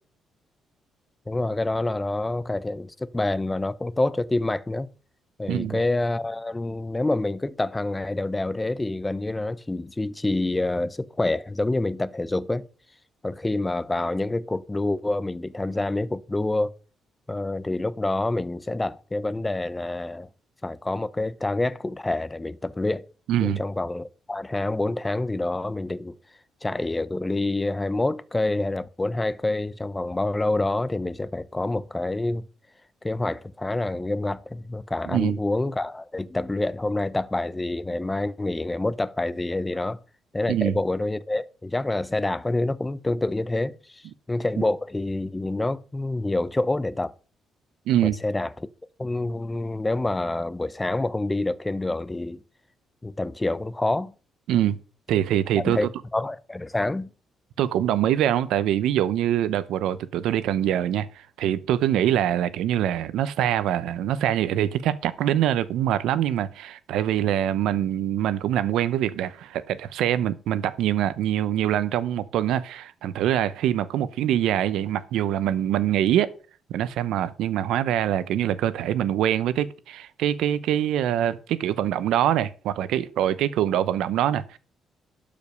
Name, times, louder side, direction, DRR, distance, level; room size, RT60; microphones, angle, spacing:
voice 1, 1.3-4.9 5.4-12.6 13.2-16.7 17.3-20.3 20.6-23.1 23.4-26.1 26.6-32.4 33.0-40.0 40.3-44.0 44.3-47.1 48.0-48.7 49.0-52.4 53.0-54.1 55.6-57.1, left 2 dB, 15° left, 0.7 m, -27 dB
voice 2, 5.5-5.8 23.3-23.6 35.1-35.4 40.5-40.7 47.9-48.2 54.5-54.8 55.1-55.9 57.6-76.3 76.7-84.6, right 11 dB, 85° right, 0.8 m, -24 dB
12.0 x 5.2 x 6.6 m
cardioid pair, 90°, 0 cm